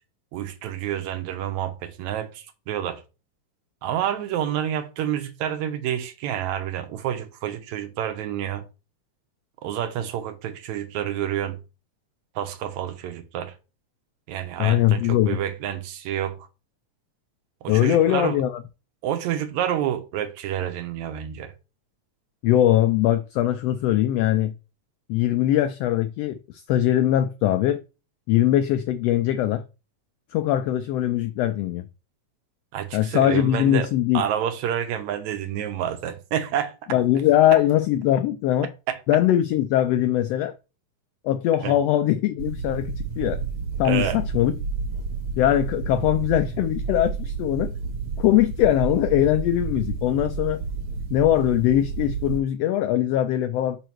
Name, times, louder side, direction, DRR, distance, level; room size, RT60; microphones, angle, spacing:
voice 1, 0.3-3.0 3.8-8.6 9.6-11.6 12.4-13.6 14.3-16.4 17.6-18.4 19.0-21.5 32.7-33.9 34.1-36.7 38.9-39.0 41.6-41.7 43.8-44.2, right 10 dB, 80° right, 2.1 m, -28 dB
voice 2, 14.6-15.4 17.7-18.6 22.4-24.5 25.1-27.8 28.3-29.6 30.3-31.8 32.9-34.2 36.9-38.7 39.1-40.5 41.2-43.4 43.8-44.5 45.4-47.7 48.2-50.6 51.1-53.8, left 12 dB, 85° left, 1.4 m, -21 dB
sound 1, 42.4-52.4, right 4 dB, 55° right, 2.0 m, -30 dB
5.6 x 5.1 x 4.5 m
omnidirectional pair, 3.3 m